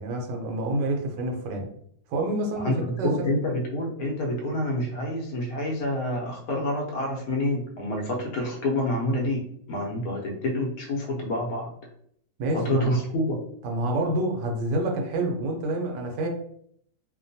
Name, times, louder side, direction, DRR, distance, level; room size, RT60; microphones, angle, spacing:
voice 1, 0.0-1.7 2.1-3.3 12.4-12.9 13.6-16.3, right 1 dB, 80° right, 2 dB, 1.2 m, -28 dB
voice 2, 3.0-11.7 12.5-13.4, left 1 dB, 70° left, 0 dB, 1.0 m, -27 dB
2.9 x 2.1 x 2.6 m, 0.66 s
omnidirectional pair, 1.9 m